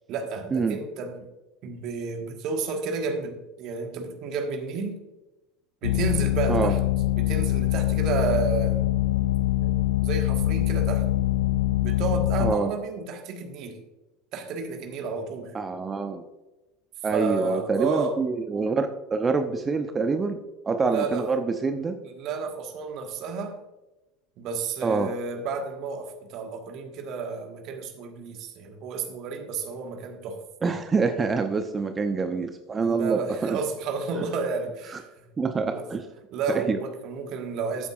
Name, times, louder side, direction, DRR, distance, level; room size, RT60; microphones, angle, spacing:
voice 1, 0.1-1.3 1.6-5.0 5.8-6.8 7.2-8.9 9.6-9.7 10.0-11.1 11.8-13.8 14.3-15.5 17.1-18.1 20.8-21.3 22.0-23.6 24.4-30.7 32.8-35.1 35.6-35.8 36.3-37.9, right 4 dB, 45° right, 5 dB, 1.6 m, -31 dB
sound 1, 5.8-12.5, left 14 dB, 70° left, 0.3 m, -24 dB
voice 2, 12.4-12.7 15.5-16.2 17.0-20.4 20.7-22.0 24.8-25.1 30.6-33.6 34.2-34.3 34.9-35.0 35.4-36.1 36.5-36.8, right 4 dB, 20° right, 7 dB, 0.8 m, -26 dB
14.0 x 8.2 x 2.5 m, 1.1 s
figure-of-eight pair, 75°, 0 cm